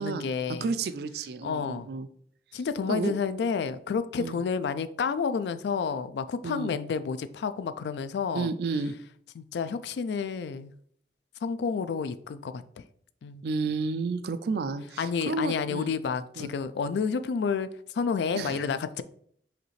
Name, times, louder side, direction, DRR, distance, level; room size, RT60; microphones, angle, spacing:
voice 1, 0.0-0.7 1.4-1.9 2.5-8.5 9.4-10.7 11.4-12.6 13.2-13.4 15.0-17.7 17.9-19.0, left 5 dB, 75° left, 0.3 m, -30 dB
voice 2, 0.6-2.1 2.9-3.1 4.2-4.4 6.4-6.8 8.3-9.0 13.4-15.9 16.4-16.5 18.3-18.7, right 4 dB, 60° right, 0.3 m, -31 dB
4.9 x 3.2 x 3.2 m
head